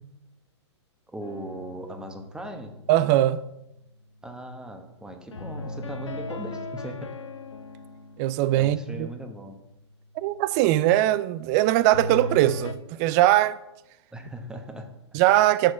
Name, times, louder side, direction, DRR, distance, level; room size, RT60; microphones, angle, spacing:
voice 1, 1.1-2.7 4.2-7.2 8.6-9.6 14.1-15.0, right 1 dB, 5° right, 1.0 m, -38 dB
sound 1, 1.2-3.5 5.3-9.2 11.9-12.7, left 2 dB, 85° left, 0.7 m, -38 dB
voice 2, 2.9-3.4 8.2-9.1 10.2-13.6 15.1-15.7, right 14 dB, 35° right, 0.4 m, -21 dB
6.3 x 6.2 x 6.0 m
hypercardioid pair, 115°, 15 cm